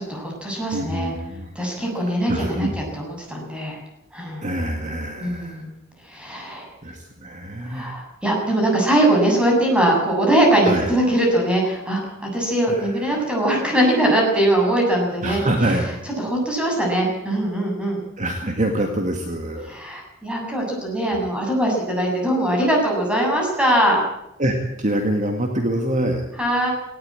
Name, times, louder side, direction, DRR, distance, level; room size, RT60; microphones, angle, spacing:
voice 1, 0.0-1.1 1.6-3.8 4.1-4.5 5.2-5.7 6.0-6.7 7.7-15.4 16.2-18.0 19.7-24.0 26.4-26.7, right 1 dB, 5° right, -1 dB, 7.2 m, -21 dB
voice 2, 0.7-1.5 2.3-2.8 4.4-5.6 6.8-8.0 10.6-10.9 12.7-13.2 15.2-15.9 18.2-19.8 21.0-21.2 24.4-26.2, right 1 dB, 35° right, 4 dB, 1.9 m, -25 dB
19.0 x 17.5 x 8.8 m, 0.84 s
head